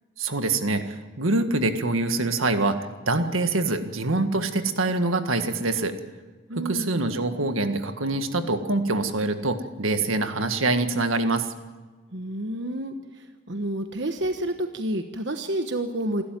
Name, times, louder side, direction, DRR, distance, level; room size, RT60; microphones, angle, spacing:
voice 1, 0.2-6.0 6.6-11.5, right 2 dB, 90° right, 8 dB, 1.8 m, -25 dB
voice 2, 6.5-7.0 12.1-16.2, right 1 dB, 60° right, 6 dB, 1.2 m, -29 dB
28.0 x 13.0 x 9.1 m, 1.3 s
head